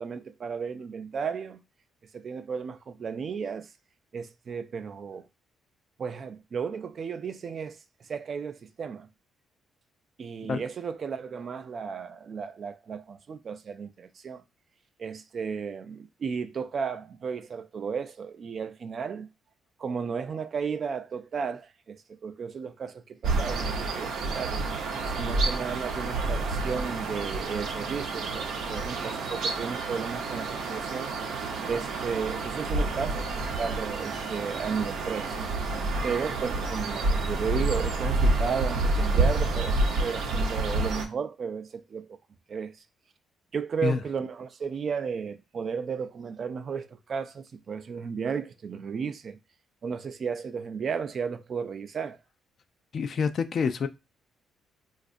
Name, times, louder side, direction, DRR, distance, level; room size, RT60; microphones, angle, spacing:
voice 1, 0.0-1.6 2.1-3.7 4.1-5.3 6.0-9.1 10.2-14.4 15.0-19.3 19.8-24.7 25.1-31.1 31.7-35.4 36.0-42.2 42.5-42.8 43.5-49.4 49.8-52.2, right 6 dB, 50° right, 0.4 m, -34 dB
sound 1, 23.2-41.1, right 3 dB, 80° right, 0.7 m, -29 dB
voice 2, 52.9-53.9, left 5 dB, 55° left, 0.3 m, -27 dB
4.0 x 2.4 x 2.5 m
cardioid pair, 90°, 0 cm